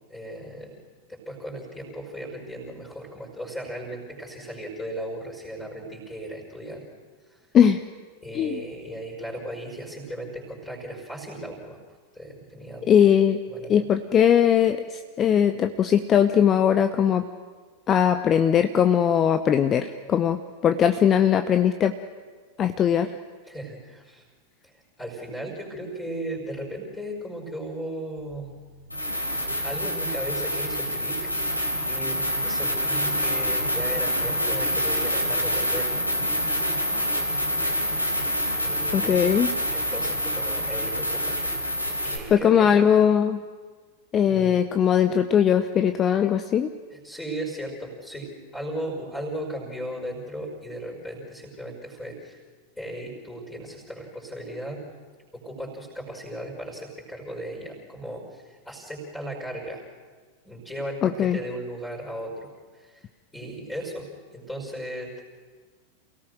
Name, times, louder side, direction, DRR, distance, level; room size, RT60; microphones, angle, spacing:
voice 1, 0.1-0.8 1.1-6.8 7.3-7.4 8.2-11.8 12.1-12.9 13.5-13.8 23.5-24.2 24.6-28.5 29.6-36.0 38.6-39.4 39.7-41.6 42.0-42.7 44.3-44.6 46.9-52.4 52.8-54.8 55.3-59.8 60.4-63.1 63.3-65.2, right 1 dB, 10° left, -3 dB, 5.4 m, -36 dB
voice 2, 12.9-13.4 13.7-17.2 17.9-21.9 22.6-23.2 38.9-39.5 42.3-43.4 44.1-46.7 61.0-61.4, left 8 dB, 30° left, 10 dB, 0.8 m, -20 dB
sound 1, 28.2-28.3 28.9-42.2, equal, 90° left, 3.7 m, -26 dB
28.5 x 17.5 x 6.6 m, 1.5 s
figure-of-eight pair, 90°, 0 cm